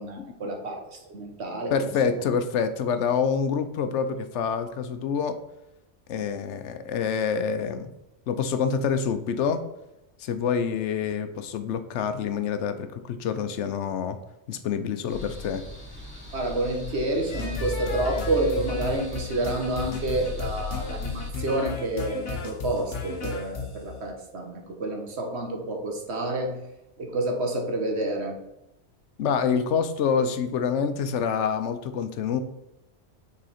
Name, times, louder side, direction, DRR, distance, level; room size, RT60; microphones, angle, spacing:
voice 1, 0.0-1.9 16.3-26.6 27.0-28.4, right 2 dB, 70° right, 3 dB, 1.4 m, -29 dB
voice 2, 1.7-5.4 6.1-7.9 8.3-9.6 10.2-14.2 14.5-15.6 29.2-32.4, left 6 dB, 80° left, 10 dB, 1.0 m, -27 dB
sound 1, 15.1-21.3, left 3 dB, 25° left, 2.2 m, -39 dB
sound 2, 17.3-23.9, left 3 dB, 60° left, 1.1 m, -34 dB
6.2 x 4.1 x 4.2 m, 0.88 s
omnidirectional pair, 1.2 m